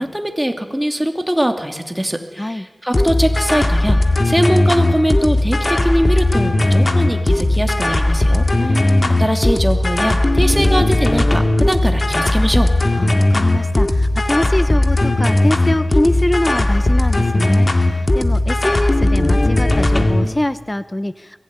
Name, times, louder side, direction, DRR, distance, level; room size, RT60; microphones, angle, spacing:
voice 1, 0.0-4.0 4.2-8.9 9.2-12.7, equal, 10° right, 5 dB, 2.6 m, -21 dB
sound 1, 2.9-20.3, left 1 dB, 45° left, 2.0 m, -16 dB
voice 2, 8.6-9.2 12.9-21.4, left 1 dB, 20° left, 13 dB, 0.8 m, -23 dB
23.0 x 16.5 x 9.6 m, 1.3 s
wide cardioid pair, 60°, 0 cm